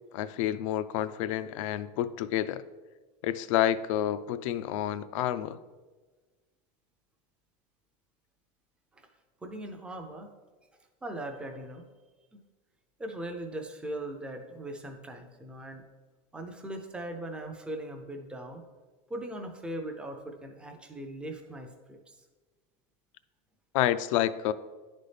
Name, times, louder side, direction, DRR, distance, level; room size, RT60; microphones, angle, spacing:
voice 1, 0.1-2.6 3.2-5.6 23.7-24.5, left 12 dB, 75° left, 14 dB, 0.4 m, -29 dB
voice 2, 9.4-10.3 11.0-11.8 12.3-12.4 13.0-15.8 16.3-18.6 19.1-22.2, right 1 dB, 5° right, 4 dB, 0.5 m, -39 dB
10.5 x 4.1 x 3.3 m, 1.3 s
supercardioid pair, 170°, 17 cm